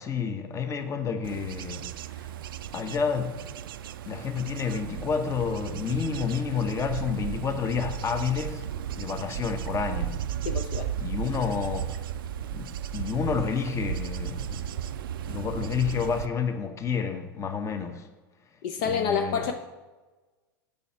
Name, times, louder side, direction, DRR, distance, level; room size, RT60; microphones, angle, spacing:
voice 1, 0.0-2.3 2.7-3.5 4.1-10.2 10.9-12.0 12.5-14.7 15.2-18.1 18.8-19.5, left 6 dB, 25° left, 1.0 m, -30 dB
Bird / Insect / Wind, 1.2-16.3, right 10 dB, 80° right, 0.4 m, -35 dB
voice 2, 10.5-10.9 18.6-19.5, left 6 dB, 60° left, 0.6 m, -28 dB
6.9 x 4.9 x 5.6 m
hypercardioid pair, 100°, 11 cm